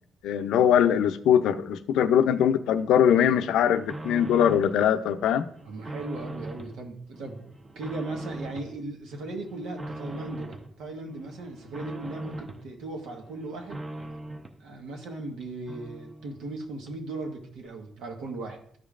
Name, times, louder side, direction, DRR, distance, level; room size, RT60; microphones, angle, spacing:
voice 1, 0.2-5.5, left 9 dB, 90° left, 0.5 m, -22 dB
sound 1, 3.2-4.8 5.2-6.8 7.1-8.8 9.1-10.7 11.1-12.7 13.0-14.6 15.0-15.1 15.4-15.5 15.7-16.5 16.9-17.0, right 1 dB, 25° right, 0.8 m, -40 dB
voice 2, 5.6-7.4 7.7-13.8 14.6-18.6, right 2 dB, 90° right, 1.3 m, -37 dB
13.0 x 5.1 x 2.5 m
cardioid pair, 130°, 0 cm